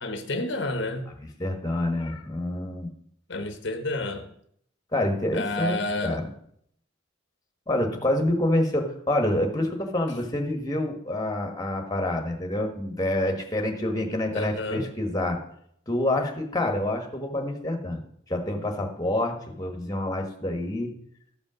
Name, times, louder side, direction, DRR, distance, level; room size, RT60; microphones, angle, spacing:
voice 1, 0.0-1.1 3.3-4.3 5.3-6.3 14.3-14.9, left 2 dB, 65° left, 0.9 m, -30 dB
voice 2, 1.4-2.9 4.9-6.2 7.7-15.4 15.9-18.0 18.3-20.9, left 1 dB, 20° left, 1.3 m, -27 dB
13.0 x 5.2 x 6.2 m
head